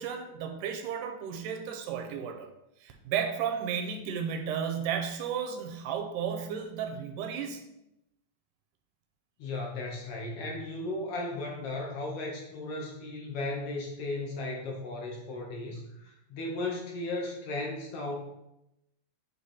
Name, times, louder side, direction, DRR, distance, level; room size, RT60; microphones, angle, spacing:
voice 1, 0.0-2.5 2.8-7.6, right 7 dB, 85° right, 5 dB, 2.1 m, -33 dB
voice 2, 9.4-18.2, left 2 dB, 70° left, -1 dB, 1.5 m, -36 dB
8.2 x 2.9 x 4.2 m, 0.86 s
omnidirectional pair, 3.6 m